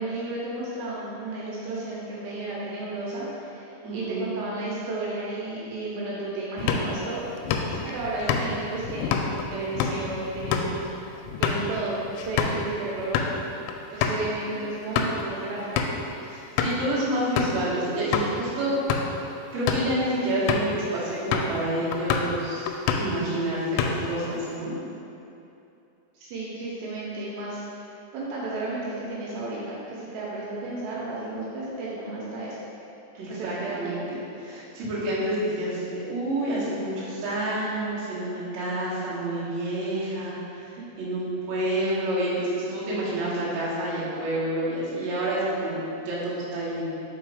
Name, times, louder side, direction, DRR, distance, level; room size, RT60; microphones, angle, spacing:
voice 1, 0.0-3.7 3.9-7.3 7.8-11.0 11.4-13.3 13.9-15.8 26.1-27.9 28.1-32.6 33.3-34.1 40.8-40.9, right 2 dB, 75° right, -6 dB, 2.9 m, -33 dB
voice 2, 3.8-4.3 7.7-7.8 13.9-14.1 14.4-14.6 16.2-18.8 19.5-24.7 33.1-34.0 34.4-40.7 41.0-45.8 46.1-46.9, right 1 dB, 55° right, -10 dB, 2.1 m, -28 dB
sound 1, 6.6-12.6 13.0-13.3 13.7-13.8 14.0-14.2 14.7-15.2 15.8-16.1 16.6-16.9 17.4-17.6 18.1-18.3 18.8-19.2 19.5-19.9 20.5-20.8 21.3-21.6 21.9-22.4 22.7-23.2 23.5-24.2, left 6 dB, 90° left, 3.0 m, -27 dB
5.4 x 5.2 x 4.8 m, 2.8 s
omnidirectional pair, 5.3 m